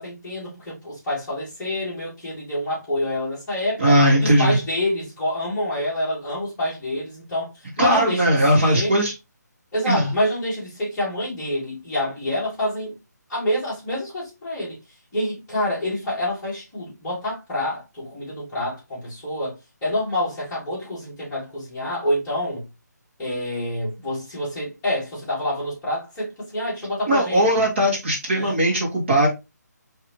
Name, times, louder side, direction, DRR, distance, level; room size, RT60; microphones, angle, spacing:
voice 1, 0.0-3.9 4.2-9.0 9.7-12.9 13.3-14.8 15.1-22.7 23.2-27.4 28.3-28.6, left 1 dB, 10° left, 2.0 m, -27 dB
voice 2, 3.8-4.6 7.8-9.1 9.9-10.1 27.1-29.3, equal, 40° right, 1.9 m, -19 dB
4.7 x 3.2 x 3.1 m
hypercardioid pair, 175°, 10 cm